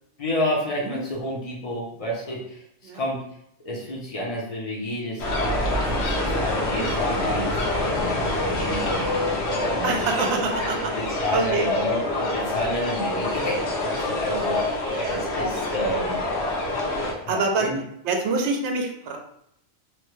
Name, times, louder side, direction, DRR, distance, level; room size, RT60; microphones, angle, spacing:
voice 1, 0.2-2.6 2.9-3.2 3.6-5.6 5.9-9.1 9.6-10.0 11.0-14.8 15.1-16.2 17.2-17.8, equal, 35° left, -3 dB, 0.6 m, -30 dB
sound 1, 5.2-17.1, left 2 dB, 65° left, 1.0 m, -26 dB
voice 2, 9.8-10.9 11.3-11.7 14.9-15.2 15.5-15.6 17.3-17.7 18.0-19.2, right 3 dB, 70° right, 3 dB, 0.8 m, -26 dB
3.0 x 2.1 x 3.1 m, 0.75 s
omnidirectional pair, 1.3 m